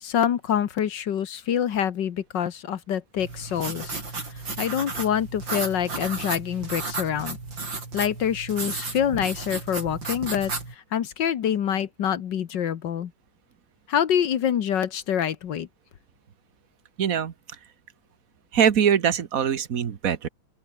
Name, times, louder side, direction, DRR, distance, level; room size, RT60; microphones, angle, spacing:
voice 1, 0.0-4.0 4.6-7.4 7.9-10.5 10.9-13.1 13.9-15.7, left 9 dB, 65° left, 1.7 m, -26 dB
sound 1, 3.2-10.7, right 3 dB, 65° right, 5.6 m, -33 dB
voice 2, 17.0-17.3 18.5-20.3, right 8 dB, 45° right, 1.5 m, -22 dB
open air
omnidirectional pair, 2.2 m